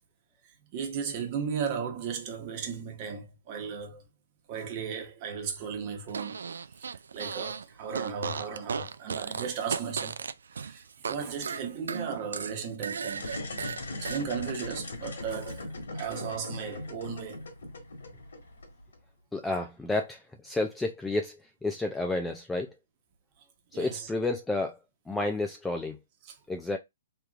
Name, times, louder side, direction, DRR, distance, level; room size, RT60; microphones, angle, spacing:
voice 1, 0.7-4.0 4.5-6.4 6.8-13.3 13.6-13.7 13.9-15.7 15.9-17.4 23.7-24.1 26.2-26.3, right 6 dB, 35° right, 1.0 m, -36 dB
Fart, 6.1-7.6 7.9-11.2 11.4-14.2, right 6 dB, 90° right, 0.3 m, -35 dB
sound 1, 13.1-19.0, left 2 dB, 85° left, 1.7 m, -39 dB
voice 2, 19.3-22.7 23.7-24.8 25.1-26.0 26.5-26.8, left 2 dB, 5° left, 0.3 m, -31 dB
3.4 x 3.1 x 2.4 m
hypercardioid pair, 155°, 0 cm